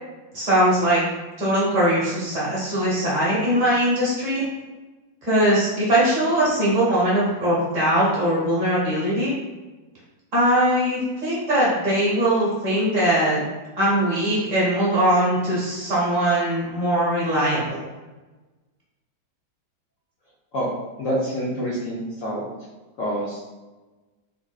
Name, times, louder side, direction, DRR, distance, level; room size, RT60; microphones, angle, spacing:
voice 1, 0.3-1.1 1.4-4.5 5.2-9.3 10.3-13.4 13.8-17.8, right 1 dB, 55° right, -7 dB, 1.0 m, -21 dB
voice 2, 21.0-22.4 23.0-23.5, equal, 85° left, -5 dB, 0.7 m, -27 dB
3.5 x 2.5 x 2.3 m, 1.2 s
omnidirectional pair, 2.1 m